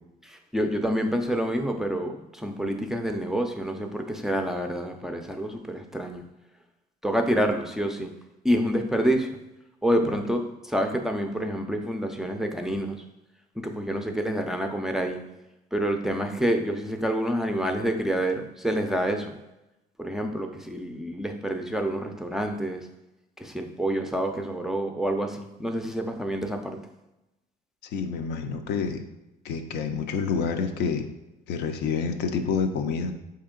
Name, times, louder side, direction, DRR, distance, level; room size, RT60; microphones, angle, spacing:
voice 1, 0.2-6.2 7.0-8.1 8.4-9.3 9.8-13.0 13.6-15.2 15.7-19.4 20.0-22.9 23.4-26.8, equal, 5° right, 4 dB, 0.4 m, -27 dB
voice 2, 27.9-29.0 29.4-31.1 31.5-33.1, left 5 dB, 80° left, 6 dB, 0.5 m, -28 dB
4.3 x 2.9 x 3.7 m, 0.94 s
cardioid pair, 110°, 17 cm